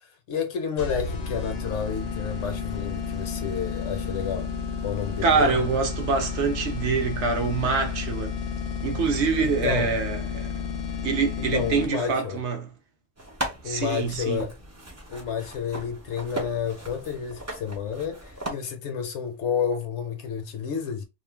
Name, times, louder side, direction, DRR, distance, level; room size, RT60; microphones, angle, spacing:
voice 1, 0.0-4.5 4.8-5.6 9.4-9.9 11.5-12.4 13.6-14.5 15.1-21.0, left 7 dB, 65° left, 0.8 m, -30 dB
sound 1, 0.8-12.2, left 5 dB, 90° left, 0.3 m, -32 dB
voice 2, 5.2-8.4 8.8-10.5 11.0-12.7 13.6-14.5, right 5 dB, 65° right, 0.8 m, -25 dB
sound 2, 13.2-18.5, right 1 dB, 25° right, 0.3 m, -37 dB
2.5 x 2.1 x 3.1 m
omnidirectional pair, 1.3 m